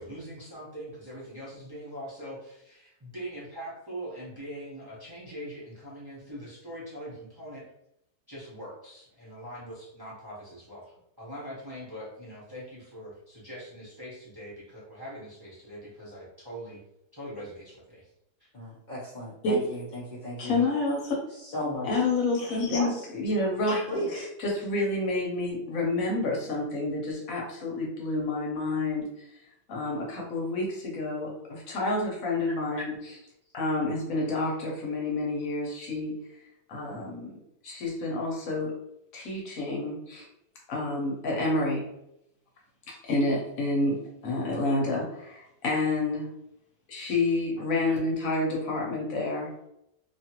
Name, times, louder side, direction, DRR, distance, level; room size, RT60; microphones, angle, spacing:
voice 1, 0.0-7.6 8.3-16.8 17.1-18.1 18.4-18.5, equal, 20° right, -8 dB, 0.8 m, -42 dB
voice 2, 18.5-20.6 21.4-21.9 22.7-23.1 23.9-24.3, left 1 dB, 45° left, -8 dB, 0.6 m, -34 dB
voice 3, 20.4-21.2 21.8-23.9 24.1-29.3 29.7-33.2 33.5-36.2 36.7-37.3 37.6-38.7 39.1-40.3 40.7-41.9 42.9-46.3 46.9-49.5, left 2 dB, 65° left, -2 dB, 1.1 m, -29 dB
2.7 x 2.4 x 2.8 m, 0.81 s
omnidirectional pair, 1.6 m